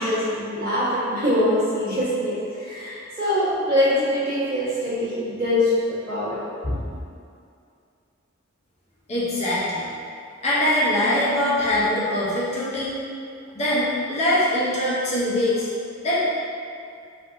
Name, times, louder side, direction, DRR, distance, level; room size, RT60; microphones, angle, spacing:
voice 1, 0.0-5.8 6.1-6.4 6.6-6.8, left 1 dB, 50° right, -12 dB, 1.4 m, -23 dB
voice 2, 9.1-9.9 10.4-12.9 13.5-15.7 16.0-16.3, left 1 dB, 35° left, -8 dB, 0.6 m, -22 dB
4.4 x 2.6 x 2.5 m, 2.4 s
head